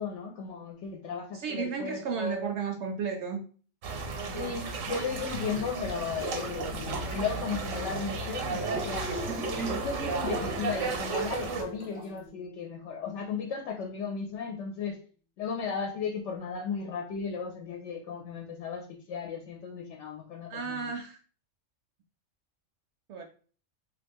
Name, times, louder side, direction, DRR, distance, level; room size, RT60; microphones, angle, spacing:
voice 1, 0.0-2.5 4.3-9.2 9.8-15.0 15.4-20.9, left 6 dB, 70° left, 1 dB, 0.9 m, -35 dB
voice 2, 1.3-3.4 4.2-4.8 20.5-21.2 23.1-23.2, right 6 dB, 70° right, 5 dB, 0.8 m, -34 dB
sound 1, 3.8-11.6, right 4 dB, 90° right, 1.2 m, -34 dB
sound 2, 5.4-12.2, equal, 10° right, 0.5 m, -39 dB
Bass guitar, 10.4-14.8, left 2 dB, 20° left, 0.9 m, -53 dB
3.0 x 2.5 x 3.5 m, 0.41 s
omnidirectional pair, 1.3 m